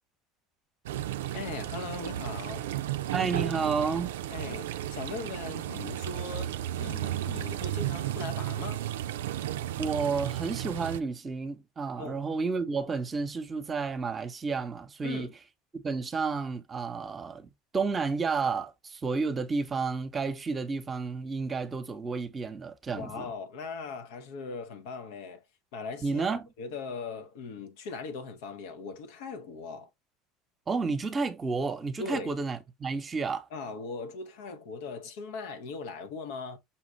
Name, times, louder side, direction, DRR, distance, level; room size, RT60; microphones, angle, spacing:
sound 1, 0.9-11.0, right 13 dB, 80° right, 0.3 m, -34 dB
voice 1, 1.3-2.7 4.3-8.8 12.0-12.2 15.0-15.3 22.9-25.4 25.7-29.9 32.0-32.3 33.5-36.6, left 4 dB, 75° left, 1.0 m, -39 dB
voice 2, 3.1-4.1 9.8-15.3 15.7-23.3 26.0-26.5 30.7-33.5, right 4 dB, 30° right, 0.9 m, -31 dB
5.8 x 2.4 x 3.1 m
hypercardioid pair, 80°, 0 cm